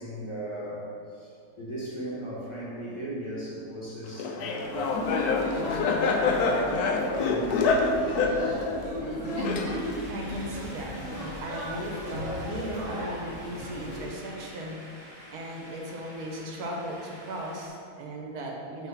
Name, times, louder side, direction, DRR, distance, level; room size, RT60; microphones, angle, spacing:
voice 1, 0.0-5.1 6.3-8.7 9.0-9.1 10.2-10.3, right 1 dB, 20° left, -8 dB, 1.4 m, -37 dB
Laughter, 4.2-10.1, left 4 dB, 85° left, 1.1 m, -26 dB
sound 1, 4.6-14.1, equal, 65° right, 2.0 m, -37 dB
voice 2, 9.3-15.0 15.3-18.9, right 1 dB, 85° right, -1 dB, 1.5 m, -37 dB
sound 2, 9.7-17.7, equal, 15° right, 1.2 m, -48 dB
6.1 x 3.4 x 5.7 m, 2.4 s
omnidirectional pair, 1.6 m